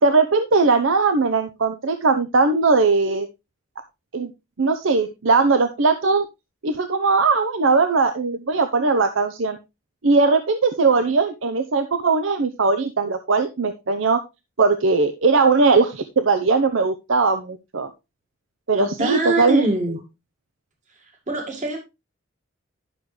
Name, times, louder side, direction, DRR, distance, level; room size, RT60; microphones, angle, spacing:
voice 1, 0.0-3.3 4.1-4.3 4.6-6.3 6.6-9.6 10.0-14.2 14.6-17.9 18.7-19.7, right 4 dB, 75° right, 8 dB, 0.7 m, -19 dB
voice 2, 18.8-20.0 21.3-21.8, right 2 dB, 35° right, 2 dB, 2.0 m, -24 dB
11.0 x 6.3 x 3.2 m, 0.25 s
head